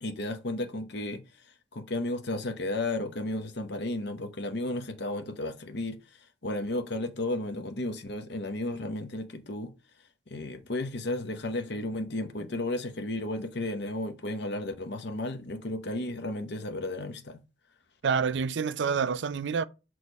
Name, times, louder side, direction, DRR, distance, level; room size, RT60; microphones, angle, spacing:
voice 1, 0.0-1.2 1.7-6.0 6.4-9.7 10.3-17.4, left 2 dB, 65° left, 0.8 m, -33 dB
voice 2, 18.0-19.7, right 6 dB, 70° right, 0.4 m, -27 dB
6.3 x 3.1 x 5.2 m
head